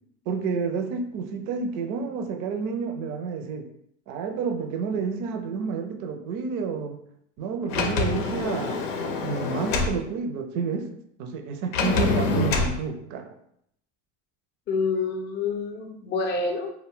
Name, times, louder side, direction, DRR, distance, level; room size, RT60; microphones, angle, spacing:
voice 1, 0.3-3.7 4.1-7.0 7.4-10.9 11.2-13.3, right 5 dB, 50° right, 5 dB, 0.5 m, -30 dB
Sliding door, 7.7-10.0 11.7-12.8, left 4 dB, 80° left, 0.6 m, -26 dB
voice 2, 14.7-16.7, left 4 dB, 30° left, 4 dB, 0.5 m, -27 dB
2.2 x 2.1 x 3.6 m, 0.73 s
hypercardioid pair, 95°, 37 cm